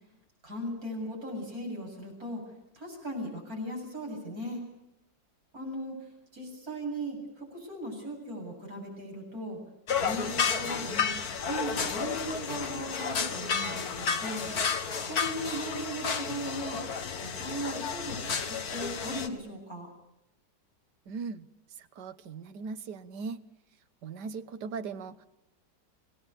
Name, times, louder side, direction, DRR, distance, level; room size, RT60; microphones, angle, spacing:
voice 1, 0.4-2.4 2.7-4.6 5.5-6.0 6.3-9.6 10.0-11.1 11.4-14.5 15.0-16.8 17.2-19.9, right 1 dB, 55° right, 0 dB, 8.3 m, -38 dB
sound 1, 9.9-19.3, left 6 dB, 60° left, 2.0 m, -32 dB
voice 2, 21.1-21.5 21.8-23.4 24.0-25.3, right 5 dB, 70° right, 11 dB, 1.7 m, -39 dB
26.0 x 18.5 x 8.4 m, 0.88 s
omnidirectional pair, 1.9 m